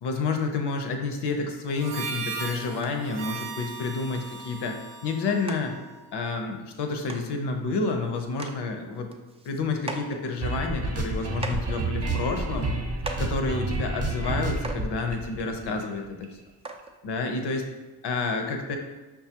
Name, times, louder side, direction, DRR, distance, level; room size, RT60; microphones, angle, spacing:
voice 1, 0.0-5.7 6.1-9.1 9.4-12.7 13.2-16.3 17.0-17.7 18.0-18.8, left 3 dB, 65° left, 5 dB, 0.7 m, -29 dB
Harmonica, 1.7-6.3, right 4 dB, 80° right, 0.6 m, -38 dB
sound 1, 2.8-3.1 3.7-3.8 4.1-4.5 5.1-5.2 5.5-5.6 6.7-6.8 7.1-7.3 7.9-8.0 8.3-8.6 8.9-10.2 10.9-11.0 11.4-11.8 12.5-12.7 13.0-13.3 14.3-14.4 14.6-14.9 15.9-16.0 16.6-16.9 17.8-17.9, right 3 dB, 15° right, 0.3 m, -38 dB
sound 2, 10.4-16.3, right 2 dB, 35° right, 0.7 m, -30 dB
5.4 x 2.3 x 2.8 m, 1.2 s
cardioid pair, 60°, 43 cm